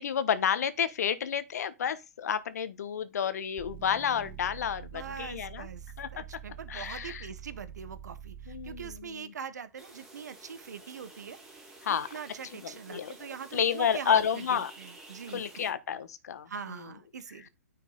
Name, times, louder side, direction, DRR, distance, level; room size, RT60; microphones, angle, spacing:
voice 1, 0.0-5.7 6.0-6.2 6.7-7.3 8.5-9.3 11.8-12.1 12.5-13.1 13.5-14.7 15.3-16.9, left 8 dB, 65° left, 1.2 m, -30 dB
sound 1, 3.6-9.2, right 9 dB, 30° right, 0.7 m, -46 dB
voice 2, 4.9-11.4 11.9-15.4 16.5-17.5, right 6 dB, 75° right, 1.1 m, -42 dB
sound 2, 9.8-15.7, right 2 dB, 5° right, 2.3 m, -51 dB
9.6 x 4.5 x 4.0 m
hypercardioid pair, 140°, 9 cm